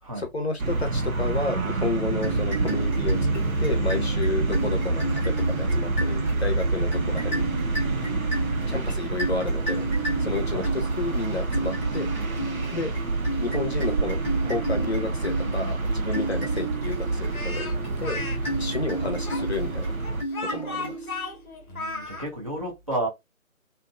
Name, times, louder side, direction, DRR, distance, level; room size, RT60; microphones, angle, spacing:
voice 1, 0.2-7.4 8.0-8.2 8.7-9.9 10.2-12.1 12.7-12.9 13.4-14.2 14.5-17.7 18.0-19.9 20.4-21.1, left 3 dB, 50° left, 0.8 m, -31 dB
sound 1, 0.6-20.2, right 3 dB, 80° right, 0.9 m, -27 dB
sound 2, 2.2-21.4, right 2 dB, 10° left, 0.8 m, -34 dB
Speech, 17.3-18.4 19.3-22.3, left 3 dB, 85° left, 0.9 m, -34 dB
voice 2, 21.7-23.1, right 1 dB, 25° right, 0.7 m, -31 dB
2.7 x 2.5 x 2.3 m
figure-of-eight pair, 155°, 42 cm